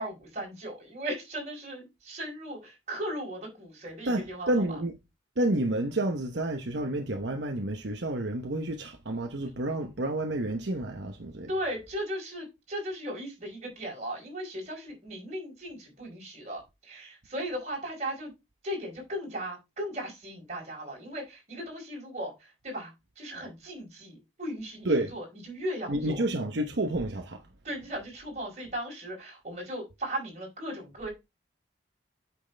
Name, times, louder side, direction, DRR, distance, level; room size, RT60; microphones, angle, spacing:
voice 1, 0.0-4.5 11.5-18.3 18.6-22.3 22.6-26.2 27.6-31.1, equal, 40° right, 4.7 m, -37 dB
voice 2, 4.1-4.9 5.4-11.5 24.8-25.1 25.9-27.4, right 1 dB, 70° right, 0.9 m, -29 dB
8.5 x 6.2 x 3.3 m
head